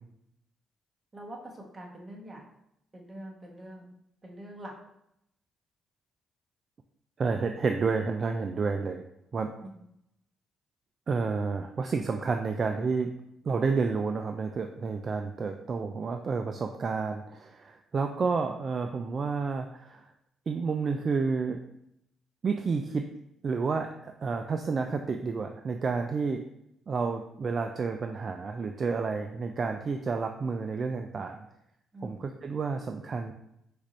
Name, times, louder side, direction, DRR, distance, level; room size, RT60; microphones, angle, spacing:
voice 1, 1.1-2.5 2.9-3.9 4.2-4.8 9.3-9.8 31.9-32.2, right 1 dB, 25° right, 0 dB, 1.1 m, -44 dB
voice 2, 7.2-9.0 9.3-9.5 11.1-13.1 13.4-20.1 20.5-21.6 22.4-23.1 23.4-26.4 26.9-31.4 32.0-33.3, right 4 dB, 45° right, 5 dB, 0.3 m, -30 dB
4.8 x 2.5 x 4.2 m, 0.79 s
cardioid pair, 90°, 0 cm